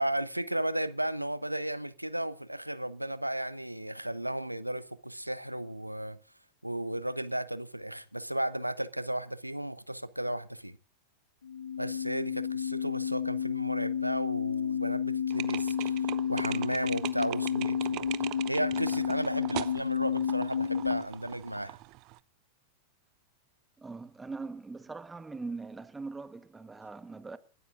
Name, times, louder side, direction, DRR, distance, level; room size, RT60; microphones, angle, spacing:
voice 1, 0.0-6.2 6.6-10.8 11.8-18.1 18.5-21.8, right 1 dB, 90° right, 0.8 m, -34 dB
sound 1, 11.4-21.0, left 8 dB, 70° left, 0.9 m, -31 dB
sound 2, 15.3-22.2, right 20 dB, 40° right, 0.6 m, -41 dB
voice 2, 23.8-27.4, right 3 dB, 10° right, 1.2 m, -41 dB
29.5 x 12.5 x 2.5 m
figure-of-eight pair, 90°, 0 cm